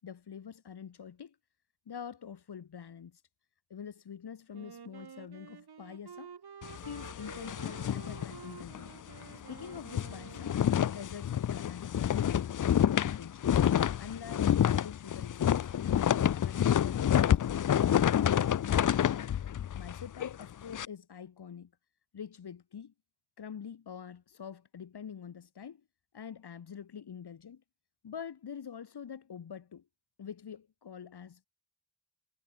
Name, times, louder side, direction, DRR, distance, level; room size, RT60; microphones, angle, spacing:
voice 1, 0.0-1.4 1.8-3.2 3.7-6.3 6.8-8.9 9.5-10.6 10.9-12.5 12.8-13.6 14.0-15.7 16.1-19.2 19.7-21.7 22.1-22.9 23.4-25.8 26.1-27.6 28.0-29.8 30.2-31.5, left 7 dB, 85° left, 5.1 m, -45 dB
Wind instrument woodwind instrument, 4.5-11.2, right 7 dB, 75° right, 6.6 m, -50 dB
sound 1, 6.6-8.9 9.2-9.4 9.7-20.9, left 10 dB, 55° left, 0.6 m, -28 dB
wide cardioid pair, 85°, 38 cm